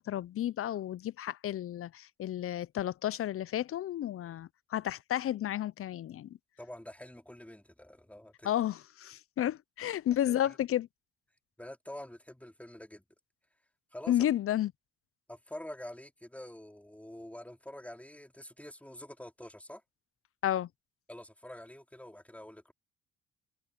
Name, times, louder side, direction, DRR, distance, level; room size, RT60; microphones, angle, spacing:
voice 1, 0.0-6.4 8.4-10.9 14.1-14.7 20.4-20.7, left 12 dB, 50° left, 0.5 m, -32 dB
voice 2, 6.6-8.5 10.3-10.6 11.6-13.0 13.9-14.1 15.3-19.8 21.1-22.7, left 1 dB, 5° left, 3.7 m, -47 dB
cardioid pair, 90°, 30 cm